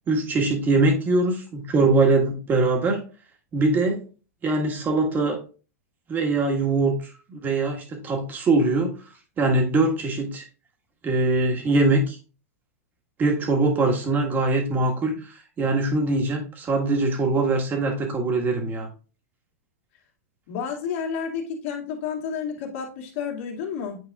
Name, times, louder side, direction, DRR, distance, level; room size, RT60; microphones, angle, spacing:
voice 1, 0.1-3.1 3.5-4.0 4.4-5.4 6.1-7.0 7.3-9.0 9.4-10.4 11.0-12.2 13.2-18.9, right 2 dB, 20° right, 2 dB, 1.5 m, -22 dB
voice 2, 20.5-24.0, left 6 dB, 55° left, 0 dB, 2.2 m, -30 dB
9.3 x 4.5 x 2.4 m, 0.36 s
supercardioid pair, 140°, 8 cm